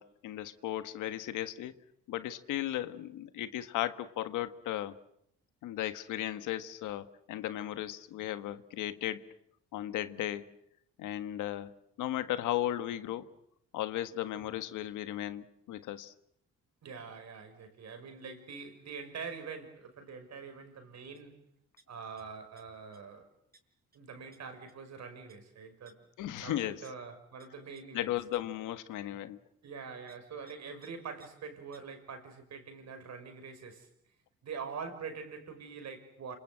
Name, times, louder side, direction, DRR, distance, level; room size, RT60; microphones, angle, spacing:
voice 1, 0.0-1.7 2.1-4.9 5.6-9.2 9.7-10.5 11.0-11.7 12.0-13.3 13.7-16.1 26.2-26.8 27.9-29.4, left 13 dB, 90° left, 11 dB, 1.6 m, -36 dB
voice 2, 16.8-21.4 21.9-23.3 23.9-26.1 26.4-28.1 29.6-33.9 34.4-36.4, right 5 dB, 60° right, 7 dB, 6.0 m, -44 dB
sound 1, 21.1-21.3 21.6-22.2 22.6-23.0 23.5-23.6 23.9-24.0 24.3-24.4 24.7-24.9 25.3-25.4 25.9-26.0 26.4-26.5 26.8-26.9 27.4-27.5 27.8-27.9 28.3-28.4 28.9-29.0 30.1-30.2 30.5-30.6 30.8-30.9 31.2-31.3 31.7-31.8, right 3 dB, 30° right, 5.3 m, -60 dB
27.5 x 26.0 x 7.8 m, 0.75 s
cardioid pair, 90°, 30 cm